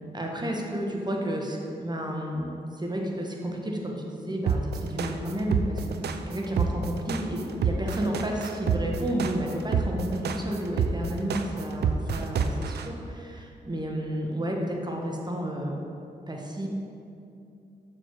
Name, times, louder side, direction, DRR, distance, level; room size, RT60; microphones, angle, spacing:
voice 1, 0.1-15.8 16.3-16.7, right 1 dB, 25° right, 0 dB, 1.2 m, -31 dB
sound 1, 4.5-12.8, right 6 dB, 75° right, 0.4 m, -27 dB
6.3 x 4.7 x 4.6 m, 2.6 s
supercardioid pair, 45°, 17 cm